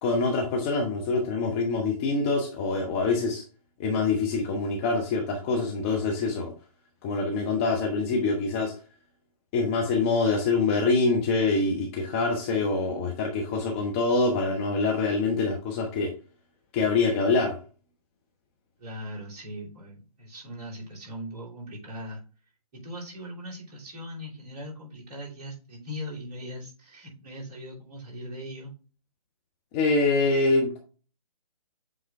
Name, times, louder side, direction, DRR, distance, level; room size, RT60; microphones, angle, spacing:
voice 1, 0.0-3.4 3.8-6.5 7.0-8.7 9.5-16.1 16.7-17.6 29.7-30.8, left 3 dB, 20° left, 1 dB, 0.9 m, -25 dB
voice 2, 18.8-22.2 22.7-28.7, equal, 20° right, -5 dB, 2.9 m, -40 dB
7.9 x 3.7 x 3.3 m, 0.36 s
figure-of-eight pair, 135°, 20 cm